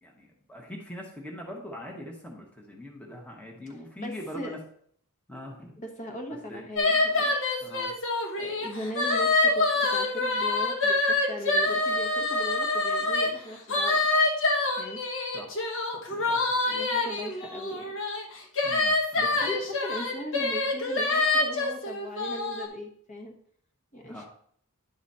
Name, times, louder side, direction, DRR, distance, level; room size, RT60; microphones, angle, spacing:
voice 1, 0.0-4.6 5.3-5.8 6.5-6.6 7.6-7.9 15.3-15.6 15.9-16.5 18.6-19.5 24.0-24.3, equal, 5° left, -1 dB, 1.0 m, -42 dB
voice 2, 4.0-4.6 5.8-7.4 8.4-14.0 14.7-15.0 16.6-18.0 18.4-18.8 19.1-23.3 23.9-24.3, equal, 35° left, 2 dB, 1.2 m, -39 dB
sound 1, 6.8-13.3 13.7-22.7, left 2 dB, 60° left, 1.3 m, -26 dB
10.5 x 4.0 x 4.2 m, 0.63 s
head